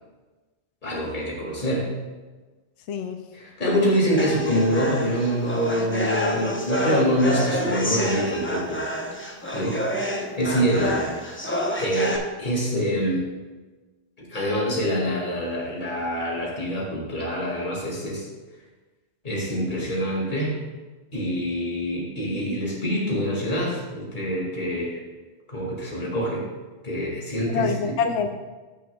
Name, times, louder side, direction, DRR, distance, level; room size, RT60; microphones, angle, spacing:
voice 1, 0.8-1.9 3.3-8.8 9.5-11.0 11.8-13.3 14.2-18.3 19.2-20.6 21.1-25.0 25.5-26.4 26.8-27.9, equal, 40° left, -3 dB, 2.3 m, -25 dB
voice 2, 2.9-3.2 10.7-11.0 27.5-28.3, left 6 dB, 75° left, 6 dB, 0.9 m, -26 dB
sound 1, 4.2-12.2, equal, 10° left, 0.7 m, -28 dB
15.0 x 6.5 x 2.3 m, 1.3 s
omnidirectional pair, 1.2 m